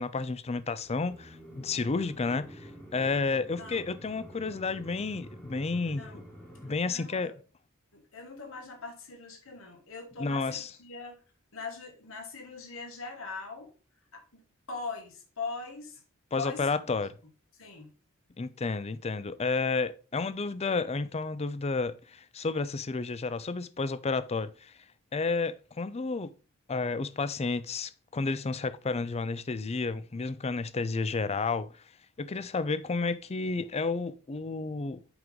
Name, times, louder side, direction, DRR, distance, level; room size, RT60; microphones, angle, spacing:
voice 1, 0.0-6.2 6.6-7.3 10.2-10.7 16.3-17.1 18.4-24.7 25.1-26.3 26.7-31.7 32.2-35.0, left 4 dB, 30° left, 0.5 m, -31 dB
sound 1, 0.8-6.7, equal, 5° left, 1.5 m, -48 dB
voice 2, 6.8-7.4 7.9-11.2 11.5-13.7 14.1-14.4 14.7-16.0 16.4-17.0 17.5-17.9, left 4 dB, 70° left, 1.7 m, -41 dB
6.0 x 5.3 x 3.8 m
head